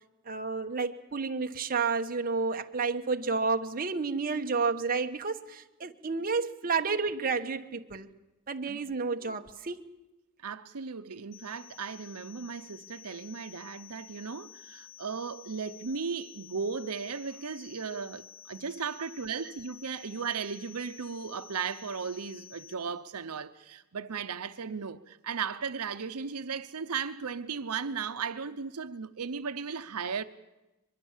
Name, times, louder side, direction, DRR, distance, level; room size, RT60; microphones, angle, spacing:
voice 1, 0.3-8.1 8.5-9.9, right 4 dB, 40° right, 1.1 m, -31 dB
voice 2, 10.4-30.2, right 6 dB, 85° right, 0.8 m, -36 dB
sound 1, 11.3-22.7, left 10 dB, 50° left, 6.7 m, -51 dB
22.5 x 22.0 x 7.3 m
head